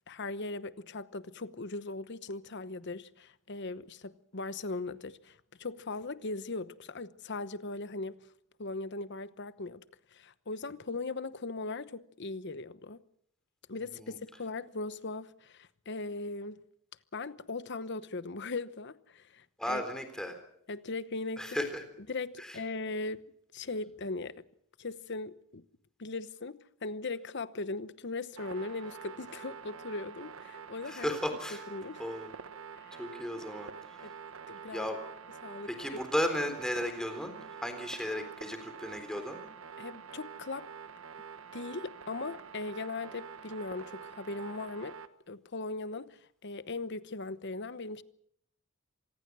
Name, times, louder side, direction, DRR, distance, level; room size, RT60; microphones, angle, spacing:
voice 1, 0.1-8.3 8.6-9.8 10.1-13.0 13.7-16.6 17.1-19.8 20.7-21.6 22.1-23.2 23.5-24.4 24.8-25.6 26.0-31.2 31.5-32.0 32.8-33.0 34.0-34.1 34.5-34.9 35.4-36.0 39.8-40.7 41.5-45.0 45.3-48.0, left 3 dB, 55° left, 1.0 m, -39 dB
voice 2, 19.6-20.4 21.4-21.8 22.4-22.6 30.9-31.6 32.0-32.3 33.0-34.0 34.7-35.0 35.7-37.3 37.6-39.4, equal, 5° left, 3.7 m, -35 dB
sound 1, 28.4-45.1, right 6 dB, 70° right, 1.3 m, -47 dB
26.5 x 19.0 x 6.2 m
head